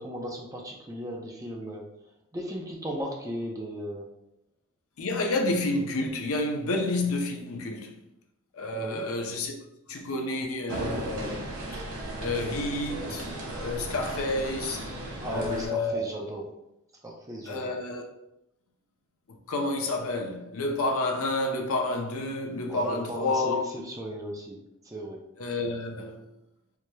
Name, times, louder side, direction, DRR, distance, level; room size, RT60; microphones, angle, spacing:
voice 1, 0.0-1.8 2.3-4.0 8.7-9.1 15.2-16.4 17.0-17.8 22.7-24.6 24.8-25.2, equal, 15° right, 0.5 m, -36 dB
voice 2, 5.0-8.0 8.5-9.5 9.9-11.5 12.2-13.3 13.6-14.9 15.3-16.0 17.5-18.0 19.3-23.6 25.4-26.3, left 2 dB, 70° left, 0.6 m, -29 dB
sound 1, 10.7-15.7, right 1 dB, 75° right, 0.8 m, -36 dB
4.7 x 2.8 x 2.2 m
head